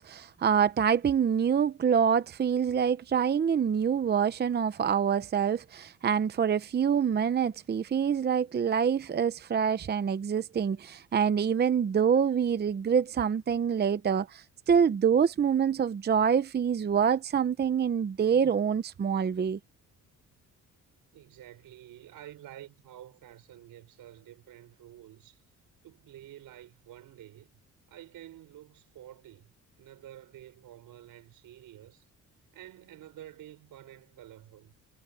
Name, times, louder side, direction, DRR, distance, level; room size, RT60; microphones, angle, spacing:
voice 1, 0.0-19.6, right 7 dB, 30° right, 0.7 m, -26 dB
voice 2, 21.1-25.4 25.8-27.5 27.9-32.0 32.5-34.7, right 13 dB, 80° right, 4.8 m, -50 dB
cardioid pair, 125°, 33 cm